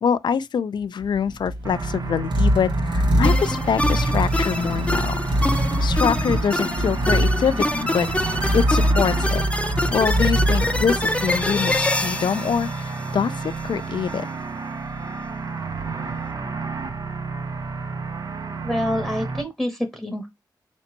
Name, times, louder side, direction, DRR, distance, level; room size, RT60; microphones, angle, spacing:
voice 1, 0.0-5.2 5.8-9.4 9.9-14.3, left 7 dB, 75° left, 0.4 m, -25 dB
sound 1, 1.0-11.6, equal, 75° right, 1.2 m, -23 dB
sound 2, 1.6-19.4, right 4 dB, 55° right, 0.6 m, -31 dB
sound 3, 3.2-13.6, left 1 dB, 15° left, 0.5 m, -26 dB
voice 2, 18.6-20.3, equal, 5° right, 0.9 m, -26 dB
4.2 x 2.9 x 2.9 m
wide cardioid pair, 90°, 8 cm